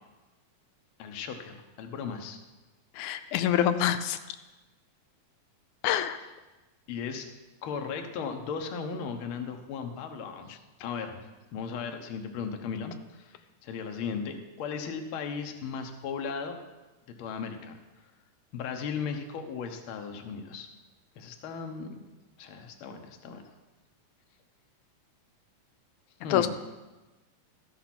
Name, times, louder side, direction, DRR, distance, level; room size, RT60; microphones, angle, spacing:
voice 1, 1.0-2.4 6.9-7.2 7.6-11.2 11.5-13.4 13.6-16.6 17.2-17.8 18.5-20.7 21.2-21.9 22.4-23.4 26.2-26.5, left 6 dB, 65° left, 5 dB, 1.4 m, -36 dB
voice 2, 3.0-4.2 5.8-6.2 26.3-26.5, left 10 dB, 90° left, 10 dB, 2.0 m, -26 dB
13.5 x 6.0 x 5.8 m, 1.1 s
omnidirectional pair, 3.3 m